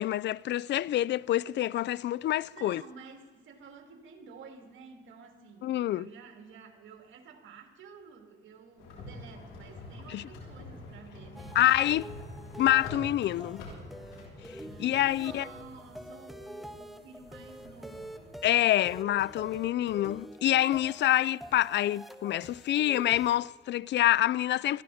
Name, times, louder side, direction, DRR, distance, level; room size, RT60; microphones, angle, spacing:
voice 1, 0.0-2.8 5.6-6.1 10.1-10.2 11.5-12.1 12.6-13.6 14.5-15.4 18.4-24.8, left 13 dB, 60° left, 0.4 m, -27 dB
voice 2, 2.3-11.6 14.6-18.4, right 5 dB, 75° right, 2.9 m, -51 dB
sound 1, 8.8-18.3, left 2 dB, 85° left, 5.9 m, -47 dB
sound 2, 11.4-23.4, right 1 dB, ahead, 1.5 m, -47 dB
21.5 x 15.0 x 4.3 m
cardioid pair, 90°, 20 cm